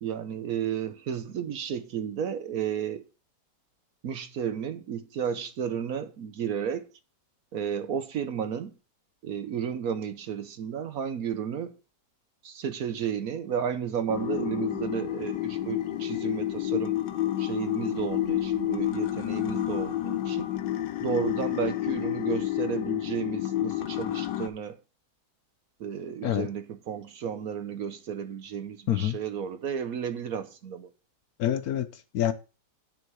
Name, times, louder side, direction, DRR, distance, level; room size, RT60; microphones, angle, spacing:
voice 1, 0.0-3.0 4.0-6.9 7.5-8.7 9.2-11.8 12.4-17.0 17.4-20.5 21.0-24.8 25.8-30.9, right 8 dB, 65° right, 1.2 m, -32 dB
sound 1, 14.1-24.5, left 13 dB, 85° left, 1.3 m, -30 dB
voice 2, 31.4-32.3, left 11 dB, 65° left, 1.1 m, -27 dB
9.7 x 4.6 x 6.0 m
omnidirectional pair, 1.8 m